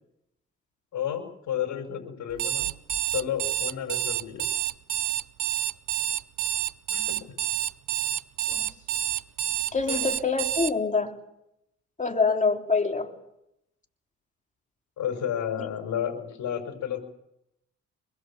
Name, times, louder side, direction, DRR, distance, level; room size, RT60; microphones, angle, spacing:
voice 1, 0.9-2.7 3.1-4.5 6.9-7.2 9.9-10.0 15.0-17.0, left 9 dB, 70° left, 5 dB, 5.8 m, -31 dB
Alarm, 2.3-10.7, right 14 dB, 70° right, 0.9 m, -28 dB
voice 2, 9.7-11.1 12.0-13.1 15.6-15.7, left 4 dB, 25° left, 3 dB, 3.1 m, -25 dB
25.5 x 21.5 x 7.2 m, 0.84 s
cardioid pair, 90°, 30 cm